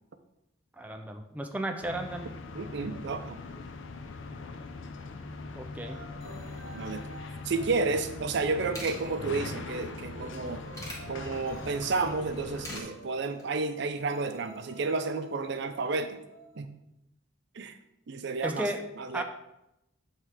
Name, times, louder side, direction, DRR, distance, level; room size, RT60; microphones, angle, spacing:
voice 1, 0.8-2.3 5.6-6.0 18.4-18.8 19.1-19.2, right 1 dB, 10° right, 4 dB, 0.4 m, -34 dB
sound 1, 1.8-12.8, left 3 dB, 80° left, 0.5 m, -41 dB
voice 2, 2.5-3.4 6.7-7.2 7.4-10.6 11.1-16.2 16.6-16.7 17.5-17.8 18.1-18.7 19.0-19.2, right 3 dB, 60° right, 8 dB, 0.5 m, -31 dB
sound 2, 5.8-16.6, right 1 dB, 90° right, 0.8 m, -50 dB
sound 3, 8.2-8.3 8.5-9.0 10.2-11.0 12.3-12.8 13.2-13.5, left 1 dB, 15° left, 1.2 m, -40 dB
7.4 x 3.2 x 4.8 m, 0.88 s
head